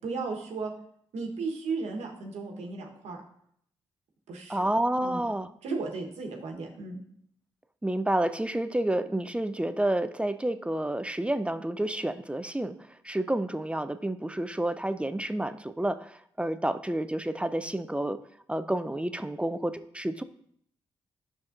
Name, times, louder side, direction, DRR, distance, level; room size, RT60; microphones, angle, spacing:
voice 1, 0.0-0.7 1.1-3.2 4.3-4.6 5.0-5.2 5.6-7.0, right 4 dB, 75° right, 1 dB, 1.2 m, -35 dB
voice 2, 4.5-5.5 7.8-12.8 13.0-18.2 18.5-20.2, right 1 dB, 10° right, 11 dB, 0.4 m, -29 dB
9.4 x 5.9 x 2.5 m, 0.68 s
supercardioid pair, 45°, 11 cm